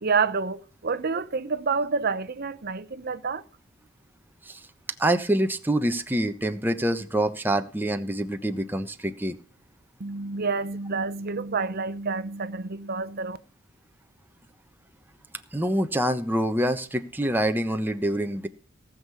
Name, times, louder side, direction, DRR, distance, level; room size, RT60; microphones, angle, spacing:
voice 1, 0.0-3.4 10.0-13.4, right 4 dB, 50° right, 0.8 m, -28 dB
voice 2, 5.0-9.4 15.5-18.5, right 1 dB, 10° right, 1.1 m, -26 dB
18.5 x 6.6 x 7.0 m
head